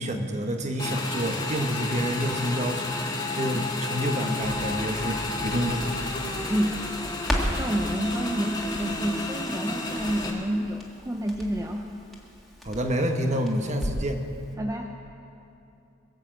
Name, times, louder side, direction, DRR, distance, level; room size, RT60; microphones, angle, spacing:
voice 1, 0.0-3.0 3.3-6.0 12.6-14.2, equal, 35° right, 4 dB, 1.2 m, -28 dB
Motorcycle / Engine, 0.8-10.3, left 2 dB, 25° left, 1.6 m, -32 dB
Crackle, 4.4-14.2 14.5-14.6, equal, ahead, 1.9 m, -36 dB
voice 2, 6.5-11.9 14.5-14.9, equal, 15° right, 2 dB, 0.6 m, -29 dB
22.0 x 7.6 x 7.6 m, 2.7 s
head